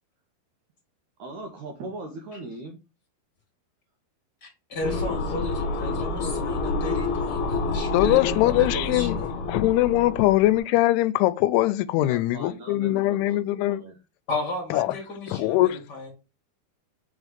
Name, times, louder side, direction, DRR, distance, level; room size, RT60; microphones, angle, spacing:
voice 1, 1.2-2.8 11.9-13.9, right 2 dB, 75° right, 1.8 m, -39 dB
voice 2, 4.4-9.2 14.3-16.1, left 2 dB, 30° left, 2.3 m, -34 dB
sound 1, 4.8-10.6, left 3 dB, 65° left, 2.5 m, -28 dB
voice 3, 7.9-13.8 14.7-14.9 15.3-15.8, left 16 dB, 90° left, 2.6 m, -22 dB
5.9 x 3.6 x 5.1 m
omnidirectional pair, 4.5 m